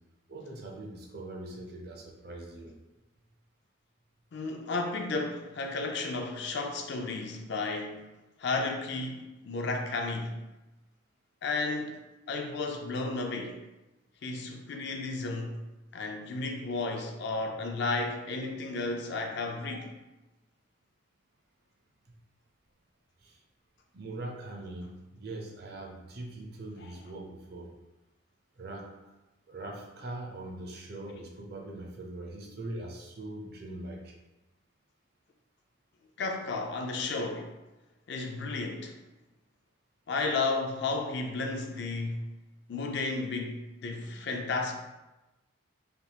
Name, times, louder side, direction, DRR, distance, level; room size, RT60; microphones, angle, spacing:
voice 1, 0.3-2.7 19.7-19.8 23.2-23.4 23.9-27.7 28.6-28.9 29.5-34.1 44.1-44.2, right 2 dB, 50° right, 0 dB, 0.5 m, -42 dB
voice 2, 4.3-8.0 8.4-10.4 11.4-12.0 12.3-13.6 14.2-15.6 15.9-19.9 26.8-27.0 36.2-37.5 38.1-38.9 40.1-42.2 42.7-44.7, left 3 dB, 55° left, 3 dB, 0.4 m, -33 dB
3.4 x 2.4 x 2.8 m, 1.0 s
head